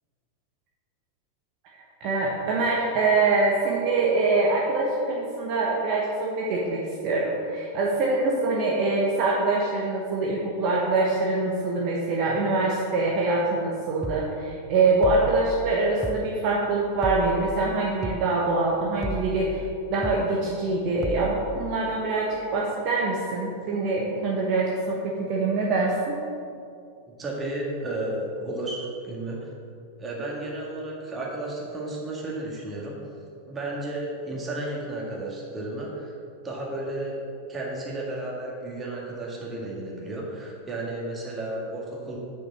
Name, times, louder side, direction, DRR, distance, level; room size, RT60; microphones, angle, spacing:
voice 1, 2.0-19.6 19.9-26.2, right 3 dB, 40° right, -3 dB, 1.1 m, -24 dB
sound 1, 14.0-14.3 15.0-15.4 16.0-16.3 17.0-17.4 18.0-18.3 19.0-19.4 20.0-20.3 21.0-21.4, right 1 dB, ahead, 0.5 m, -33 dB
voice 2, 27.1-29.5 30.0-33.0 33.5-36.1 36.4-37.2 37.5-42.2, right 2 dB, 20° right, -3 dB, 2.0 m, -33 dB
6.9 x 5.9 x 6.1 m, 2.4 s
figure-of-eight pair, 90°, 0 cm